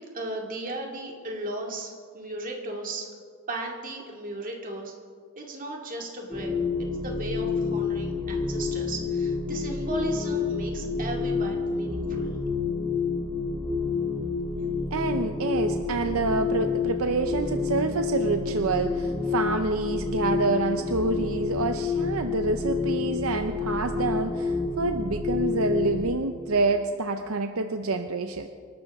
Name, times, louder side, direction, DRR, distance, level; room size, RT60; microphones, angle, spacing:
voice 1, 0.0-3.1 3.5-4.9 5.4-12.4, right 2 dB, 40° right, 0 dB, 2.2 m, -36 dB
sound 1, 6.3-26.1, left 4 dB, 5° left, 2.3 m, -28 dB
voice 2, 14.9-28.5, right 3 dB, 65° right, 7 dB, 0.7 m, -27 dB
27.0 x 12.0 x 3.6 m, 2.1 s
head